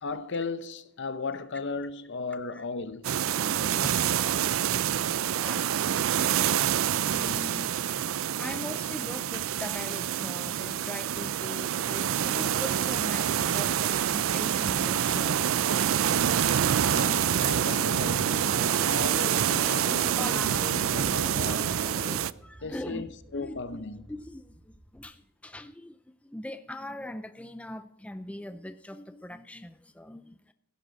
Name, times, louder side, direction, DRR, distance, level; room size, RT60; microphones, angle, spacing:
voice 1, 0.0-3.2 16.8-21.8 22.6-24.1, left 4 dB, 55° left, 0.8 m, -36 dB
sound 1, 3.0-22.3, right 9 dB, 65° right, 0.4 m, -27 dB
voice 2, 3.5-4.4 5.3-5.8 6.5-7.7 8.4-17.1 19.5-21.6 22.4-30.5, left 1 dB, 5° left, 0.4 m, -42 dB
sound 2, 12.5-25.0, right 1 dB, 15° right, 4.8 m, -54 dB
sound 3, 17.0-22.2, equal, 40° right, 3.6 m, -40 dB
16.5 x 11.0 x 4.0 m
head